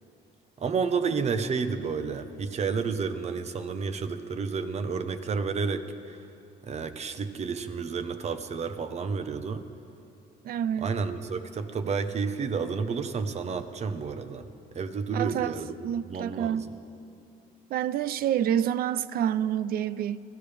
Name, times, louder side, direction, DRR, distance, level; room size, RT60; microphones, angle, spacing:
voice 1, 0.6-6.2 6.6-9.7 10.8-14.5 14.7-15.7 16.1-16.6, right 5 dB, 40° right, 9 dB, 1.0 m, -30 dB
voice 2, 10.4-10.9 15.1-15.6 15.8-16.7 17.7-20.2, right 10 dB, 60° right, 16 dB, 0.5 m, -28 dB
24.5 x 16.0 x 3.5 m, 2.7 s
cardioid pair, 110°, 17 cm